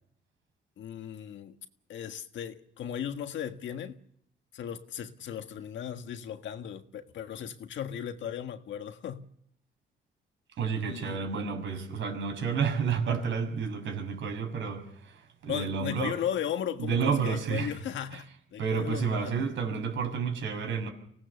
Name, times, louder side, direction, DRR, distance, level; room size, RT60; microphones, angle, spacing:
voice 1, 0.8-1.6 1.9-4.0 4.5-9.3 10.8-11.2 15.5-19.5, left 9 dB, 70° left, 1.6 m, -36 dB
voice 2, 10.6-16.1 16.8-17.7 18.1-18.2 18.6-20.9, right 6 dB, 75° right, 6.0 m, -30 dB
25.0 x 18.0 x 7.0 m
cardioid pair, 90°, 20 cm